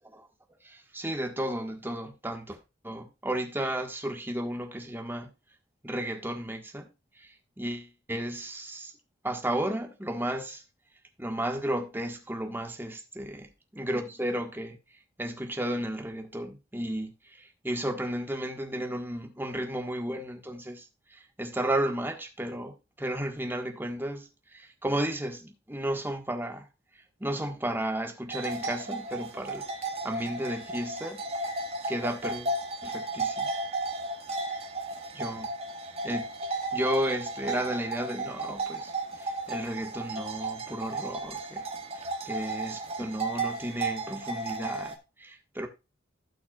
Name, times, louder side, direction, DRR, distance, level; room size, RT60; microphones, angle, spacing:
voice 1, 0.6-2.6 2.8-5.3 5.8-6.9 7.2-8.9 9.2-10.6 11.2-13.4 13.7-14.8 15.2-26.7 27.2-29.6 30.0-31.2 31.9-32.5 32.8-33.5 35.1-35.5 36.0-41.7 41.9-45.7, right 1 dB, 10° right, 1.5 m, -33 dB
sound 1, 28.3-45.0, right 2 dB, 35° right, 1.8 m, -34 dB
16.0 x 6.0 x 2.4 m
head